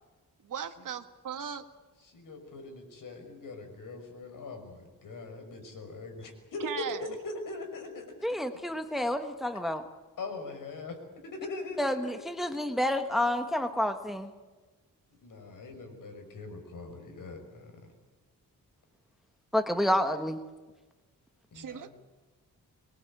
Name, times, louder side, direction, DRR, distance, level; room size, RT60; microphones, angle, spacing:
voice 1, 0.4-1.6 6.6-7.1 21.5-21.9, right 7 dB, 70° right, 8 dB, 1.8 m, -37 dB
voice 2, 2.0-6.9 7.2-8.1 10.2-11.0 11.3-12.1 15.2-17.7 21.5-21.9, left 3 dB, 70° left, 5 dB, 5.8 m, -41 dB
voice 3, 8.2-9.8 11.8-14.3 19.5-20.4, left 1 dB, ahead, 8 dB, 1.2 m, -29 dB
24.5 x 21.5 x 8.8 m, 1.3 s
wide cardioid pair, 155°, 33 cm